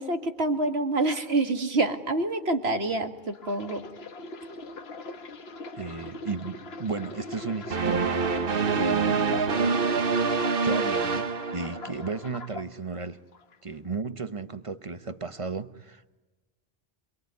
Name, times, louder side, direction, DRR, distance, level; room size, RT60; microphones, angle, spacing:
voice 1, 0.0-3.8, right 2 dB, 75° right, 2.1 m, -27 dB
sound 1, 3.3-9.8 10.2-12.7 13.3-13.6, left 3 dB, 75° left, 1.4 m, -42 dB
voice 2, 5.7-8.3 8.7-9.4 10.6-13.2 13.6-16.2, right 4 dB, 30° right, 1.0 m, -34 dB
sound 2, 7.7-12.2, right 4 dB, 60° right, 1.3 m, -26 dB
27.5 x 21.5 x 9.4 m
omnidirectional pair, 1.1 m